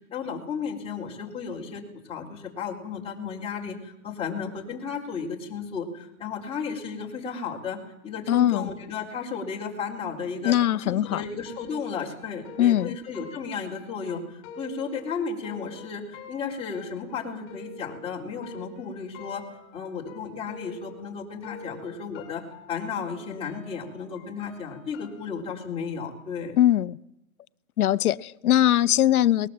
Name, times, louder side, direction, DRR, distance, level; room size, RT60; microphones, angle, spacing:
voice 1, 0.1-7.8 8.0-10.5 10.8-19.4 19.7-22.4 22.7-26.6, left 6 dB, 15° left, -4 dB, 4.0 m, -34 dB
voice 2, 8.3-8.7 10.4-11.2 12.6-13.0 26.6-27.0 27.8-29.5, left 12 dB, 85° left, 15 dB, 0.8 m, -21 dB
sound 1, 11.0-21.1 21.4-25.3, left 2 dB, 30° left, 5.2 m, -46 dB
22.0 x 20.0 x 7.7 m, 0.89 s
hypercardioid pair, 155°, 43 cm